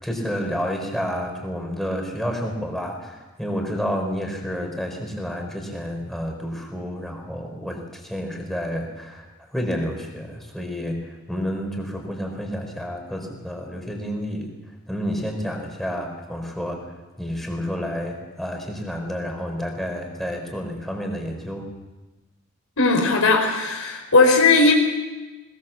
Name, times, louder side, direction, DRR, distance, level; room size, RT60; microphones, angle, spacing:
voice 1, 0.0-14.5 14.9-21.6, equal, ahead, 2 dB, 4.5 m, -30 dB
voice 2, 22.8-24.7, left 3 dB, 65° left, 3 dB, 4.5 m, -17 dB
21.5 x 21.0 x 7.3 m, 1.2 s
head